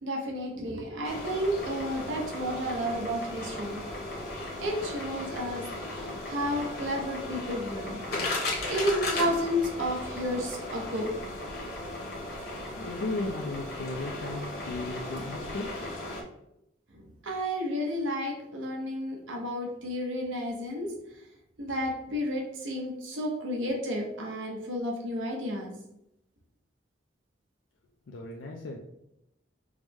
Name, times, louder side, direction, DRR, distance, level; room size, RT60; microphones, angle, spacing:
voice 1, 0.0-3.8 4.6-5.6 5.9-8.0 8.7-11.1 17.2-20.9 21.6-25.7, equal, 85° right, 0 dB, 0.8 m, -31 dB
sound 1, 1.0-16.2, left 2 dB, 50° left, 0.9 m, -36 dB
voice 2, 12.8-15.7 28.1-28.8, left 2 dB, 80° left, 0 dB, 0.4 m, -35 dB
4.8 x 2.1 x 3.4 m, 0.82 s
head